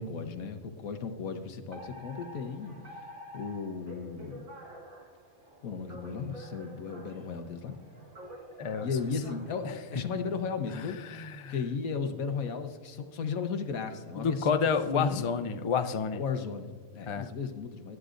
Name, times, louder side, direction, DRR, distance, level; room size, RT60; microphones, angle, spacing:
voice 1, 0.0-2.7 3.3-4.4 5.6-7.7 8.8-11.0 11.5-15.2 16.1-18.0, left 5 dB, 80° left, 7 dB, 1.5 m, -35 dB
Alarm, 1.7-10.3, equal, 40° right, 1.7 m, -48 dB
voice 2, 8.6-8.9 9.9-10.0 10.7-11.5 14.2-16.2 17.1-17.3, left 6 dB, 55° left, 9 dB, 0.3 m, -30 dB
23.0 x 11.0 x 2.6 m, 1.5 s
omnidirectional pair, 1.4 m